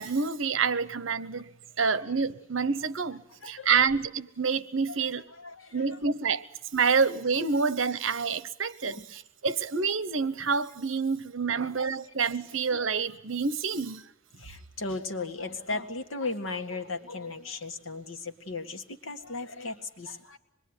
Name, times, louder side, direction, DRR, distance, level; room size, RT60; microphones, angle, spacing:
voice 1, 0.0-1.5 1.8-5.3 5.7-6.4 6.7-14.0, right 5 dB, 75° right, 1.0 m, -28 dB
voice 2, 3.4-3.8 5.3-5.9 8.9-9.1 11.5-11.7 12.0-12.1 14.4-20.4, left 3 dB, 85° left, 1.9 m, -36 dB
25.5 x 21.5 x 9.9 m
head